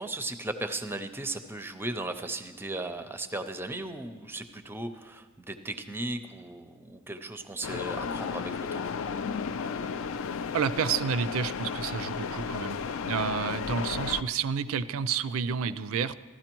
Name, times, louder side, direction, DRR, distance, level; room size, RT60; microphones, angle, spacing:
voice 1, 0.0-8.8, right 2 dB, 10° right, 9 dB, 0.5 m, -36 dB
sound 1, 7.6-14.2, left 6 dB, 65° left, 0.4 m, -33 dB
voice 2, 10.5-16.1, right 6 dB, 65° right, 14 dB, 0.4 m, -30 dB
15.5 x 12.5 x 3.0 m, 1.4 s
head